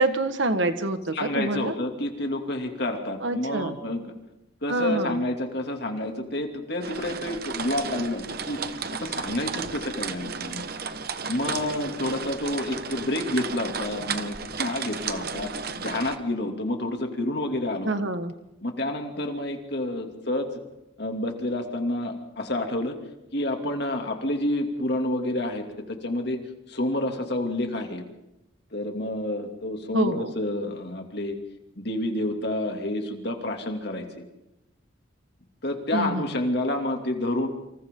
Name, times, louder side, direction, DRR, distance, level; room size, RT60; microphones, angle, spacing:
voice 1, 0.0-1.7 3.2-3.8 4.7-5.2 17.8-18.3 29.9-30.3 35.9-36.3, right 2 dB, 75° right, 8 dB, 1.6 m, -26 dB
voice 2, 1.1-4.1 4.6-10.6 11.3-17.9 18.6-20.6 21.0-23.0 23.3-26.4 26.7-28.0 28.7-31.4 31.8-34.2 35.6-37.5, left 1 dB, 55° left, 3 dB, 2.7 m, -29 dB
sound 1, 6.8-16.2, right 5 dB, 50° right, 1.2 m, -34 dB
29.0 x 26.5 x 3.9 m, 0.91 s
head